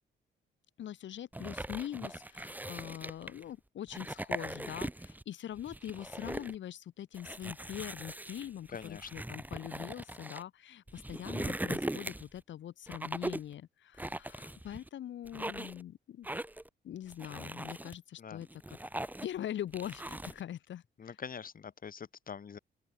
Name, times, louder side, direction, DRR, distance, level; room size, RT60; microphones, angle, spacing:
voice 1, 0.8-16.3 16.8-18.8 19.2-21.2, left 11 dB, 70° left, 3.0 m, -43 dB
sound 1, 1.3-3.4 3.9-5.2 5.6-6.6 7.1-10.4 10.9-12.4 12.9-13.5 14.0-14.9 15.3-15.8 16.2-16.7 17.1-18.0 18.4-19.4 19.7-20.4, right 1 dB, 10° right, 3.8 m, -40 dB
voice 2, 8.7-9.1 18.2-18.4 21.0-22.6, left 7 dB, 45° left, 3.9 m, -44 dB
open air
cardioid pair, 90°, 20 cm